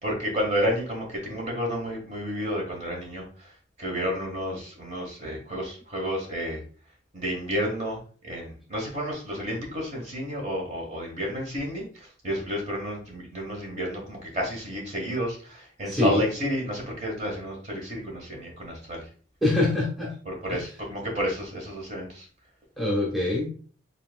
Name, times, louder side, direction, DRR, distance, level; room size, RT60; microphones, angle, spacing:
voice 1, 0.0-3.2 3.8-6.6 7.1-8.0 8.2-11.8 12.2-19.0 20.3-22.2, equal, 40° right, -1 dB, 1.5 m, -31 dB
voice 2, 15.8-16.2 19.4-20.1 20.5-20.6 22.8-23.5, left 2 dB, ahead, -3 dB, 1.0 m, -24 dB
4.3 x 3.9 x 2.3 m, 0.41 s
head